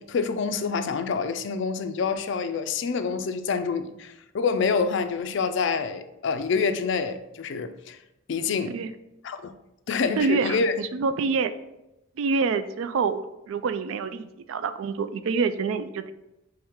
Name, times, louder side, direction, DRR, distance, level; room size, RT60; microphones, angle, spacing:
voice 1, 0.0-8.0 8.3-8.8 9.2-9.5 9.9-10.7, left 5 dB, 55° left, 0.3 m, -27 dB
voice 2, 8.5-8.9 10.0-11.5 12.2-16.1, right 5 dB, 70° right, 0.3 m, -27 dB
4.6 x 3.2 x 3.5 m
head